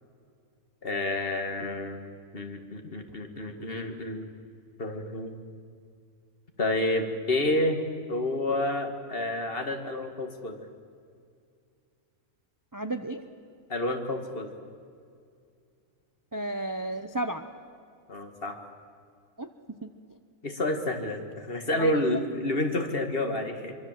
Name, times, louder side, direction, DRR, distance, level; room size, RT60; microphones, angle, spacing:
voice 1, 0.8-2.1 2.3-4.3 4.8-5.4 6.6-7.8 8.1-10.6 13.7-14.5 18.1-18.6 20.4-23.7, left 1 dB, 40° left, 5 dB, 2.2 m, -29 dB
voice 2, 12.7-13.2 16.3-17.4 19.4-19.9 21.8-22.0, right 1 dB, 20° right, 8 dB, 0.6 m, -32 dB
24.5 x 24.5 x 7.6 m, 2.3 s
omnidirectional pair, 1.5 m